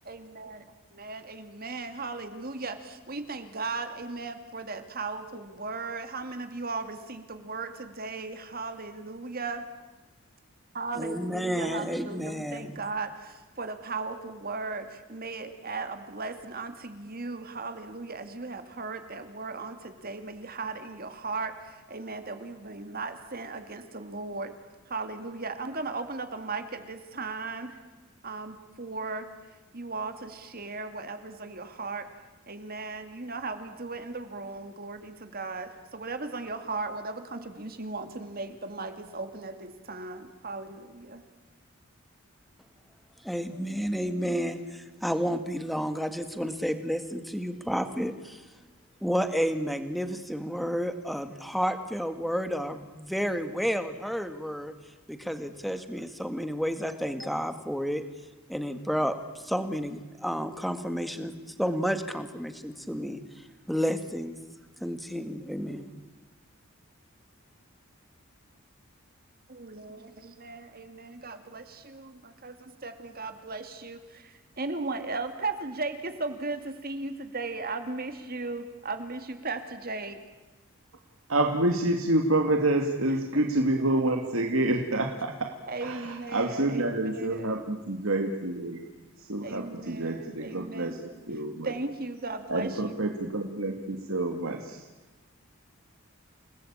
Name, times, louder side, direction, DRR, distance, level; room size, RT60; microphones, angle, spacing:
voice 1, 0.0-0.6 0.9-9.6 10.7-24.5 24.9-27.8 28.2-29.3 29.7-32.1 32.5-41.2 69.5-80.2 85.7-87.6 89.4-91.0 91.6-93.0, right 3 dB, 45° right, 8 dB, 2.4 m, -37 dB
voice 2, 10.9-12.8 43.2-48.4 49.0-54.7 55.1-58.0 58.5-64.4 64.8-65.9, equal, ahead, 8 dB, 1.8 m, -31 dB
voice 3, 81.3-85.5 85.8-88.8 89.2-91.0 91.3-91.7 92.5-94.8, right 1 dB, 65° right, 3 dB, 2.1 m, -28 dB
29.5 x 19.0 x 8.8 m, 1.2 s
head